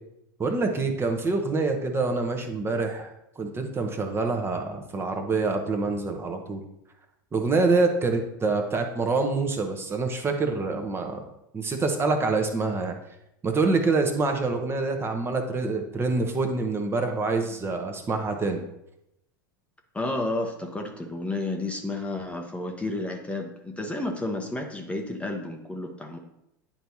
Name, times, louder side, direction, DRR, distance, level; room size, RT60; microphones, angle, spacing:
voice 1, 0.4-3.1 3.4-6.6 7.3-11.2 11.5-12.9 13.4-18.6, right 3 dB, 20° right, 4 dB, 1.0 m, -26 dB
voice 2, 19.9-26.2, left 2 dB, 10° left, 3 dB, 0.8 m, -31 dB
10.0 x 4.5 x 2.7 m, 0.82 s
hypercardioid pair, 90°, 12 cm